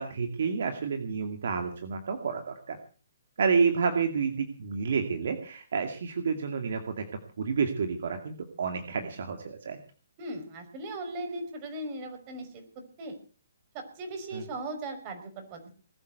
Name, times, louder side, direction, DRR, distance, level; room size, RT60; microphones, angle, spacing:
voice 1, 0.0-2.8 3.4-7.0 7.4-9.8 14.3-14.4, right 5 dB, 65° right, 6 dB, 2.3 m, -29 dB
voice 2, 10.2-13.1 13.7-15.8, right 2 dB, 30° right, 5 dB, 5.6 m, -38 dB
20.5 x 8.2 x 8.0 m, 0.40 s
hypercardioid pair, 145°, 0 cm